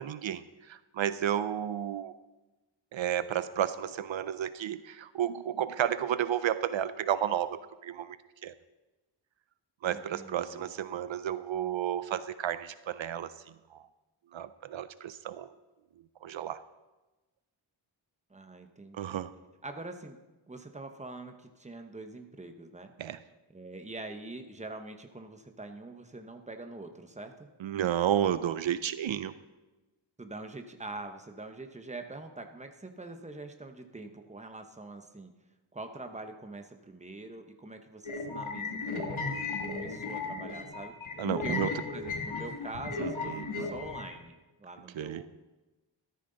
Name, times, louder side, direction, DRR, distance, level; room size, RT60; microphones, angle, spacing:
voice 1, 0.0-2.1 2.9-8.2 8.4-8.5 9.8-13.3 13.7-13.8 14.3-15.5 16.2-16.6 18.9-19.3 23.0-23.2 27.6-29.3 41.2-41.7 43.0-43.6 44.9-45.2, right 10 dB, 75° right, 14 dB, 0.6 m, -32 dB
voice 2, 9.9-10.7 18.3-19.2 19.6-20.2 20.5-22.9 23.5-27.5 30.2-35.3 35.7-40.9 41.4-45.2, right 2 dB, 15° right, 6 dB, 1.0 m, -44 dB
sound 1, 38.0-44.1, left 4 dB, 85° left, 2.0 m, -35 dB
13.5 x 13.5 x 3.9 m, 1.1 s
wide cardioid pair, 120°, 46 cm